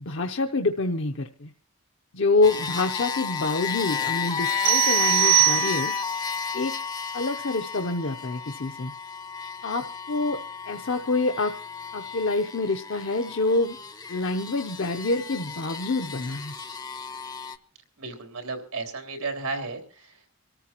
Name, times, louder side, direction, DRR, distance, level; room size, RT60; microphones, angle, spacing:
voice 1, 0.1-1.5 2.1-5.9 6.5-6.8 7.1-8.9 9.6-10.4 10.7-11.5 11.9-13.8 14.1-16.5, left 3 dB, 60° left, 4 dB, 0.7 m, -26 dB
sound 1, 2.4-17.6, left 6 dB, 20° left, 0.6 m, -32 dB
sound 2, 4.6-6.2, right 20 dB, 55° right, 1.0 m, -22 dB
voice 2, 18.0-20.3, right 3 dB, 90° right, 4 dB, 3.5 m, -34 dB
25.5 x 14.0 x 3.0 m, 0.36 s
head